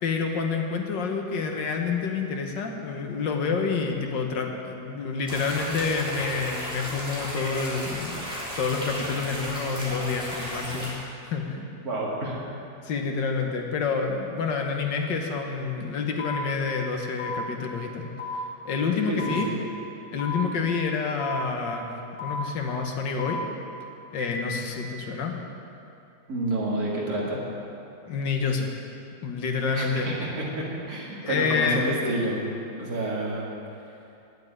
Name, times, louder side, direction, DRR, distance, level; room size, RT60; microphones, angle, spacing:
voice 1, 0.0-8.2 8.6-11.6 12.8-18.1 18.7-19.5 20.1-21.9 22.2-23.4 24.1-25.3 28.1-28.7 29.2-30.1 31.2-31.9, left 5 dB, 70° left, 3 dB, 1.7 m, -28 dB
sound 1, 5.3-10.9, equal, 5° right, 3.3 m, -34 dB
voice 2, 11.8-12.4 19.1-19.6 26.3-27.4 29.7-32.4 32.8-33.5, right 1 dB, 50° right, -4 dB, 2.6 m, -29 dB
sound 2, 16.2-16.4 17.2-17.4 18.2-18.4 19.2-19.4 20.2-20.4 21.2-21.4 22.2-22.4 23.2-23.4 24.2-24.4, left 7 dB, 40° left, 1.8 m, -34 dB
9.7 x 7.6 x 9.4 m, 2.7 s
omnidirectional pair, 2.0 m